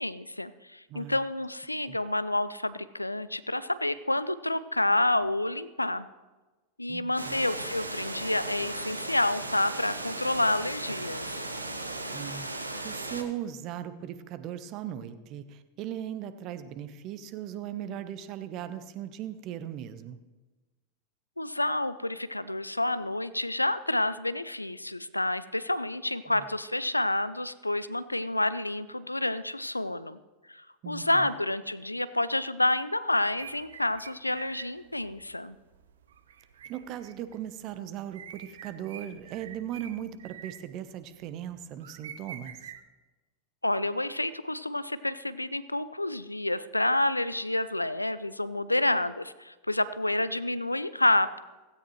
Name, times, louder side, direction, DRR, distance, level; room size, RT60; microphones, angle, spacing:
voice 1, 0.0-6.1 6.8-11.4 21.4-30.2 30.5-35.6 43.6-51.4, left 1 dB, 85° left, 16 dB, 0.5 m, -29 dB
voice 2, 6.9-7.5 12.1-20.2 26.3-26.5 30.8-31.3 36.6-42.7, right 10 dB, 40° right, 11 dB, 1.0 m, -38 dB
Water, 7.2-13.2, right 2 dB, 85° right, 1.2 m, -36 dB
sound 1, 33.4-42.8, right 8 dB, 65° right, 0.9 m, -48 dB
16.5 x 16.0 x 3.2 m, 1.2 s
figure-of-eight pair, 90°, 0 cm